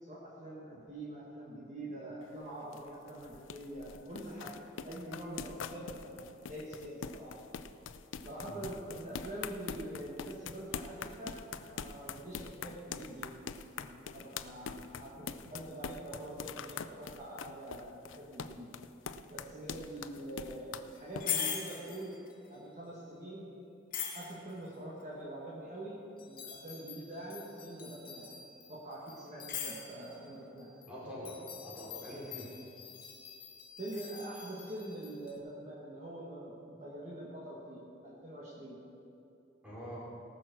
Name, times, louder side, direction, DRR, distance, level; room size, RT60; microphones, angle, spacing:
voice 1, 0.0-4.6 4.8-7.4 8.2-13.3 13.7-18.7 19.3-22.2 22.5-23.5 24.1-28.3 28.7-30.7 33.8-38.8, right 1 dB, 40° right, -5 dB, 1.7 m, -45 dB
sound 1, 2.2-21.3, left 6 dB, 90° left, 0.5 m, -44 dB
sound 2, 20.9-22.5 23.9-24.7 26.2-30.2 30.6-30.9 31.2-35.3, left 8 dB, 45° left, 1.9 m, -42 dB
voice 2, 30.9-32.5 39.6-40.0, equal, 5° right, -6 dB, 2.9 m, -44 dB
18.5 x 6.1 x 6.2 m, 2.7 s
head